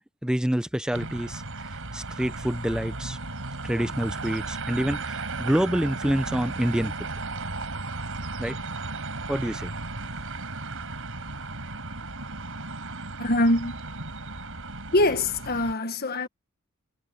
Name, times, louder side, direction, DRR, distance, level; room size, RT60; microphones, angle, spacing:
voice 1, 0.2-3.2 3.6-7.1 8.4-8.6 9.3-9.7, equal, 5° right, 0.5 m, -27 dB
sound 1, 0.9-15.7, right 3 dB, 65° right, 6.4 m, -35 dB
voice 2, 13.2-13.8 14.9-16.3, left 1 dB, 45° left, 1.4 m, -23 dB
head